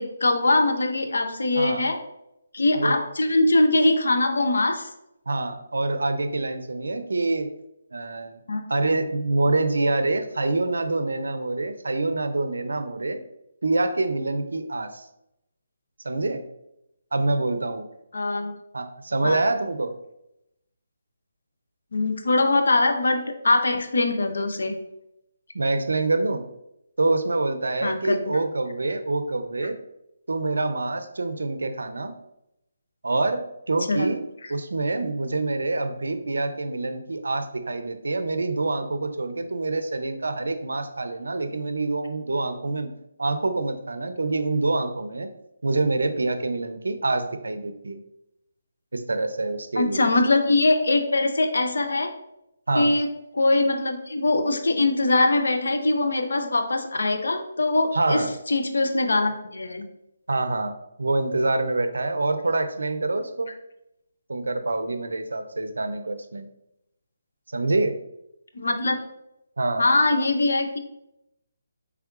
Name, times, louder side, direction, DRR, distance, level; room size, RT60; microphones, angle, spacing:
voice 1, 0.0-2.0 2.5-4.9 8.5-8.6 18.1-18.5 19.2-19.4 21.9-24.7 27.8-28.2 33.9-34.2 49.8-52.1 52.7-58.2 58.5-59.8 68.5-69.0 69.8-70.8, left 2 dB, 80° left, 5 dB, 0.6 m, -22 dB
voice 2, 1.6-1.9 2.8-3.0 5.3-7.5 7.9-8.4 8.7-13.2 13.6-15.0 16.0-16.4 17.1-17.9 18.7-19.9 25.5-26.4 27.0-29.8 30.3-32.2 33.0-33.4 33.7-42.9 43.2-45.3 45.6-48.0 48.9-50.1 52.7-52.9 57.9-58.3 60.3-63.5 64.3-66.5 67.5-68.0 69.6-69.9, right 2 dB, 85° right, 9 dB, 0.4 m, -26 dB
4.4 x 3.4 x 2.4 m, 0.84 s
hypercardioid pair, 155°, 0 cm